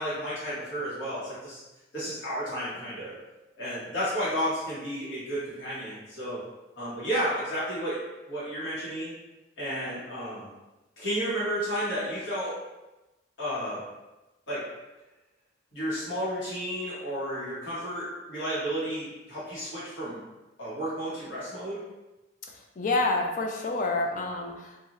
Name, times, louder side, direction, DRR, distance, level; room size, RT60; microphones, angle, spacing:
voice 1, 0.0-1.6 1.9-3.2 3.5-6.4 6.8-8.0 8.3-9.1 9.6-10.5 11.0-12.6 13.4-13.8 14.5-14.7 15.7-20.2 20.6-21.8, equal, 80° left, -10 dB, 1.2 m, -32 dB
voice 2, 22.8-24.8, left 2 dB, 45° left, 1 dB, 0.4 m, -28 dB
2.9 x 2.4 x 2.5 m, 1.0 s
head